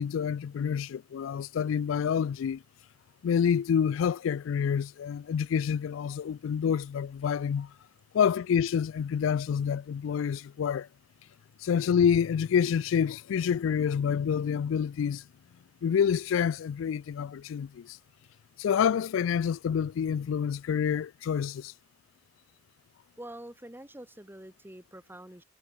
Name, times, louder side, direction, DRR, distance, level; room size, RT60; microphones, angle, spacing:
voice 1, 0.0-2.6 3.2-7.7 8.1-10.9 11.6-15.2 15.8-18.0 18.6-21.7, left 7 dB, 80° left, 0.3 m, -27 dB
voice 2, 23.2-25.4, right 1 dB, 10° right, 1.9 m, -46 dB
head